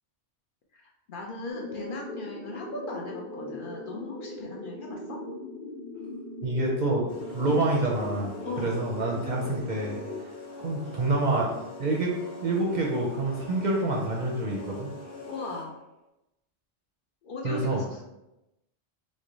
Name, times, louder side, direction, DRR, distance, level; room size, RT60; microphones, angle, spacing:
voice 1, 0.7-5.2 8.4-8.8 15.3-15.8 17.2-18.0, left 2 dB, 60° left, -1 dB, 0.6 m, -38 dB
sound 1, 1.5-10.2, left 2 dB, 40° left, 1.3 m, -39 dB
voice 2, 6.4-7.1 7.3-8.3 8.6-10.0 10.6-11.5 11.8-12.1 12.4-14.9 17.4-17.8, right 2 dB, 55° right, -2 dB, 0.6 m, -27 dB
sound 2, 7.1-15.8, left 3 dB, 90° left, 1.1 m, -43 dB
3.1 x 2.0 x 3.8 m, 0.93 s
omnidirectional pair, 1.1 m